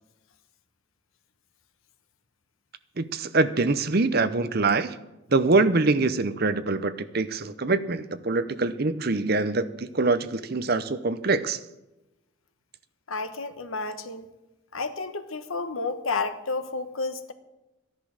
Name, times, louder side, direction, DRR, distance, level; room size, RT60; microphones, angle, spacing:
voice 1, 3.0-4.9 5.3-11.6, right 3 dB, 50° right, 12 dB, 0.7 m, -24 dB
voice 2, 13.1-14.3 14.7-17.3, left 3 dB, 85° left, 9 dB, 1.2 m, -31 dB
13.0 x 10.5 x 6.5 m, 0.97 s
head